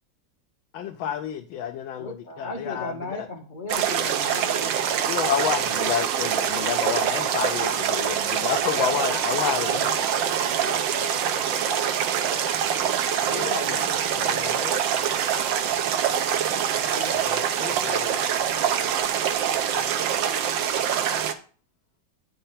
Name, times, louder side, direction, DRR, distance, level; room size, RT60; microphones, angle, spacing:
voice 1, 0.7-3.3 5.1-9.9 13.2-14.7 16.9-18.2, left 9 dB, 80° left, 4 dB, 1.4 m, -30 dB
voice 2, 2.0-5.1, left 2 dB, 30° left, 3 dB, 0.9 m, -36 dB
sound 1, 3.7-21.3, right 8 dB, 75° right, 1.5 m, -25 dB
voice 3, 8.4-12.0 12.3-12.5 13.3-13.6 14.2-14.3, equal, 45° right, 2 dB, 0.5 m, -37 dB
9.4 x 4.4 x 5.6 m, 0.40 s
omnidirectional pair, 2.2 m